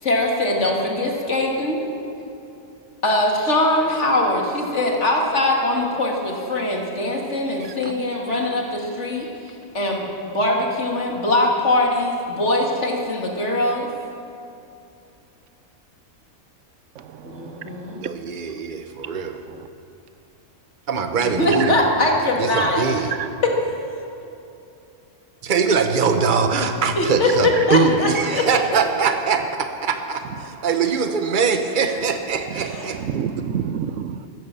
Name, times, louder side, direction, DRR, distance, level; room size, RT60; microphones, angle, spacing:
voice 1, 0.0-1.8 3.0-9.3 9.7-13.9 17.2-18.0 21.2-22.8 23.4-23.5 27.0-28.5 31.9-32.0 32.5-32.9, left 1 dB, 60° left, 0 dB, 2.5 m, -22 dB
voice 2, 7.6-7.9 17.0-18.1 19.0-19.7 21.6-21.8 23.1-23.3 27.6-27.7 30.4-30.7 32.5-34.3, right 8 dB, 70° right, 12 dB, 1.0 m, -31 dB
voice 3, 18.0-19.4 20.9-21.7 22.4-23.1 25.5-33.0, right 5 dB, 40° right, 6 dB, 1.1 m, -22 dB
14.5 x 14.0 x 6.9 m, 2.7 s
omnidirectional pair, 1.4 m